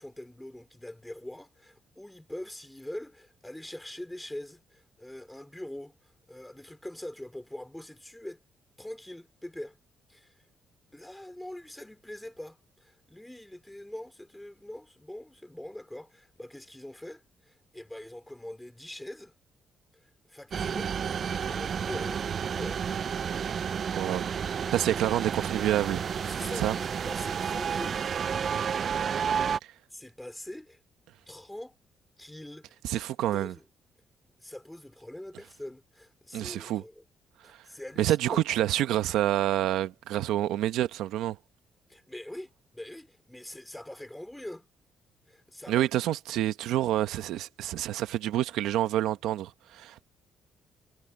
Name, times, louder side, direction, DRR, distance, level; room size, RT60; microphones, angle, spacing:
voice 1, 0.0-8.4 8.8-9.8 10.1-10.4 10.9-19.3 19.9-21.0 21.4-22.8 26.2-28.1 29.9-30.8 31.3-31.7 32.2-33.0 33.3-33.6 34.4-37.0 37.4-38.4 41.9-44.7 45.3-45.9, left 1 dB, 5° left, 4.8 m, -43 dB
sound 1, 20.5-29.6, right 7 dB, 50° right, 0.5 m, -31 dB
voice 2, 23.9-26.0 26.6-26.7 28.5-28.8 29.6-29.7 32.8-33.5 36.3-36.8 37.4-37.6 38.0-41.4 45.7-50.0, right 13 dB, 90° right, 1.0 m, -28 dB
cardioid pair, 90°, 0 cm